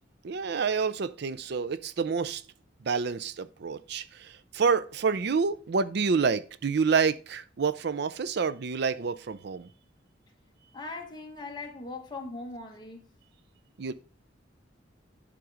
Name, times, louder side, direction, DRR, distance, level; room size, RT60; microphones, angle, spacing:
voice 1, 0.2-2.4 2.8-9.7 13.8-13.9, right 5 dB, 60° right, 0.5 m, -28 dB
voice 2, 10.7-13.1, left 3 dB, 25° left, 1.5 m, -40 dB
11.0 x 3.8 x 4.9 m
head